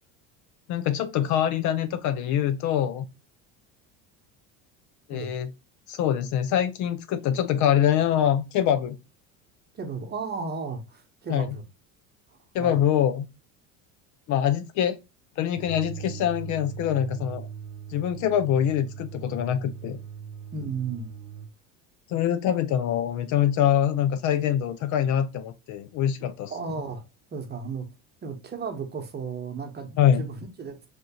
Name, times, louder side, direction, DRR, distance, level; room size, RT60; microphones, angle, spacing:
voice 1, 0.7-3.1 5.1-5.5 5.9-9.0 11.3-11.5 12.5-13.3 14.3-15.0 15.4-17.4 17.9-20.0 22.1-26.5 30.0-30.2, left 10 dB, 50° left, 0.4 m, -24 dB
voice 2, 9.7-11.6 12.3-12.8 20.5-21.1 26.5-27.0 27.3-27.9 28.2-30.9, right 5 dB, 25° right, 0.9 m, -34 dB
sound 1, 15.5-21.5, right 8 dB, 60° right, 0.7 m, -40 dB
3.2 x 2.8 x 2.9 m
supercardioid pair, 100°, 38 cm